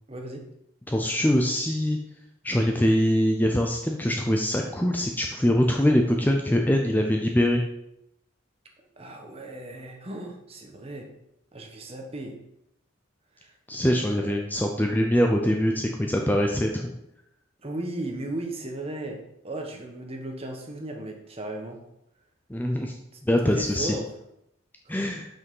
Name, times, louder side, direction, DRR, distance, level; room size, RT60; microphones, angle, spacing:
voice 1, 0.1-0.4 9.0-11.1 11.5-12.4 13.4-13.5 14.1-14.3 17.6-21.8 23.1-23.2 23.5-24.1 24.8-25.3, right 1 dB, 30° right, 3 dB, 1.1 m, -36 dB
voice 2, 0.9-2.0 2.4-7.6 13.7-16.9 22.5-22.9 23.3-24.0 24.9-25.3, equal, 10° left, 2 dB, 0.5 m, -23 dB
6.2 x 5.4 x 5.4 m, 0.81 s
head